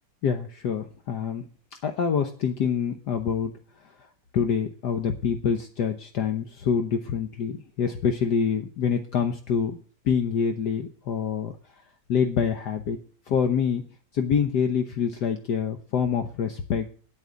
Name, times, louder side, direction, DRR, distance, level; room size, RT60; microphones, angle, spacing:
voice 1, 0.2-1.4 1.8-3.5 4.3-9.8 10.1-11.5 12.1-13.0 13.3-13.8 14.1-17.0, left 7 dB, 65° left, 6 dB, 1.5 m, -26 dB
9.3 x 8.9 x 8.2 m, 0.42 s
omnidirectional pair, 2.0 m